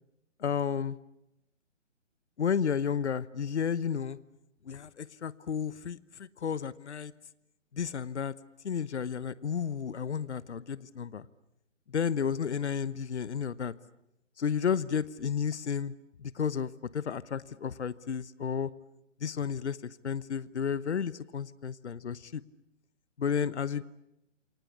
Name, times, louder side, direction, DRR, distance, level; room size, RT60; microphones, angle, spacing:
voice 1, 0.4-1.0 2.4-4.2 4.6-7.1 7.7-8.3 8.6-11.3 11.9-13.7 14.4-15.9 16.2-18.7 19.2-22.4 23.2-23.8, left 7 dB, 65° left, 18 dB, 1.1 m, -32 dB
28.5 x 24.0 x 8.4 m, 0.83 s
figure-of-eight pair, 145°, 37 cm